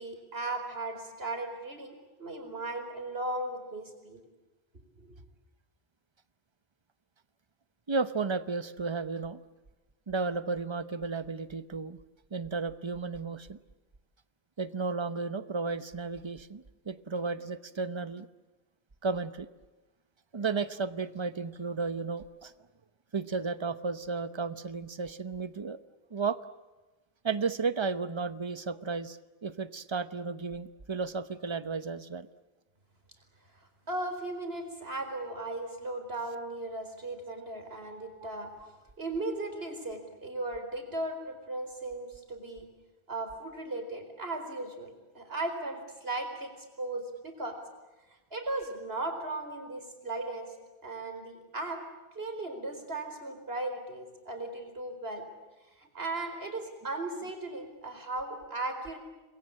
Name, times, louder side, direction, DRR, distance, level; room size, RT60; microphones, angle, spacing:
voice 1, 0.0-4.2 5.0-5.1 33.9-38.7 39.0-42.7 43.1-46.5 46.8-47.6 48.3-50.5 50.8-51.8 52.1-55.3 55.8-59.0, right 2 dB, 75° right, 5 dB, 4.9 m, -37 dB
voice 2, 7.9-9.4 10.1-12.0 12.3-13.6 14.6-18.3 19.0-19.5 20.3-22.5 23.1-25.8 26.1-26.4 27.2-32.3 38.2-38.3, right 4 dB, 30° right, 12 dB, 0.9 m, -33 dB
29.0 x 22.0 x 8.8 m, 1.1 s
omnidirectional pair, 1.0 m